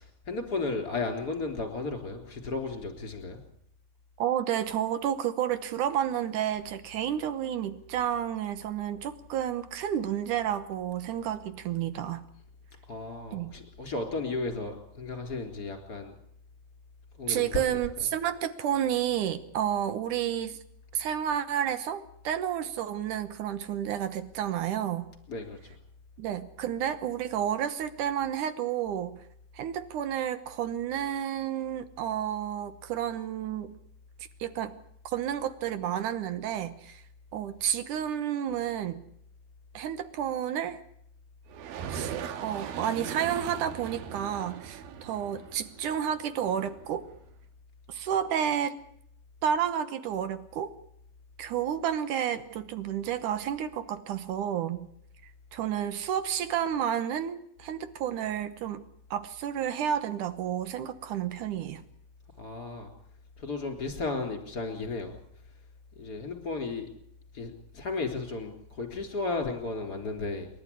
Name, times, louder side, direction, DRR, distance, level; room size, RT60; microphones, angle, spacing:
voice 1, 0.0-3.4 12.9-16.1 17.2-17.4 25.3-25.8 62.4-62.9 63.4-65.1 66.0-66.9 67.3-70.5, left 3 dB, 25° left, 5 dB, 3.8 m, -34 dB
voice 2, 4.2-12.2 13.3-13.5 17.3-20.6 20.9-25.1 26.2-29.2 29.6-33.7 34.4-34.7 35.1-37.0 37.3-39.0 39.7-40.8 41.9-42.1 42.4-47.0 47.9-48.7 49.4-50.7 51.4-54.9 55.5-58.8 59.1-61.8, right 10 dB, 70° right, 12 dB, 2.4 m, -31 dB
sound 1, 41.5-47.2, right 8 dB, 90° right, 3.2 m, -39 dB
27.5 x 12.0 x 9.9 m, 0.73 s
omnidirectional pair, 4.1 m